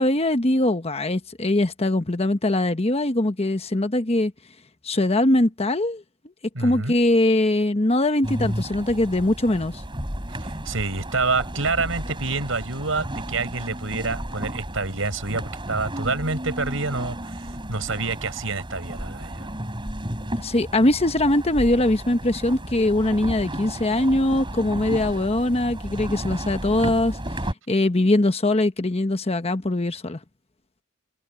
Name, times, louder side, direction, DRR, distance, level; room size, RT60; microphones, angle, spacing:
voice 1, 0.0-4.3 4.8-6.0 6.6-9.8 20.4-27.2 27.7-30.2, left 1 dB, 30° left, 1.1 m, -22 dB
voice 2, 6.5-6.9 10.4-19.5, right 3 dB, 80° right, 5.8 m, -27 dB
sound 1, 8.2-27.5, right 1 dB, 25° right, 7.6 m, -33 dB
head